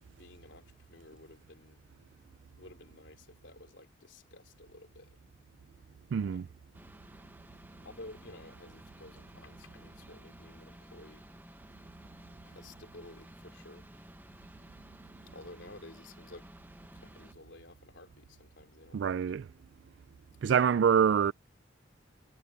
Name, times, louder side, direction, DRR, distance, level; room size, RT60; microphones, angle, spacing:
voice 1, 0.0-1.8 2.5-5.2 6.2-6.5 7.8-11.3 12.4-13.9 14.4-14.6 15.3-16.5 16.9-19.4 20.4-20.7, left 2 dB, 75° left, 3.5 m, -53 dB
voice 2, 6.1-6.4 18.9-19.4 20.4-21.3, right 7 dB, 70° right, 0.3 m, -25 dB
sound 1, 6.7-17.3, right 1 dB, 10° right, 1.0 m, -53 dB
head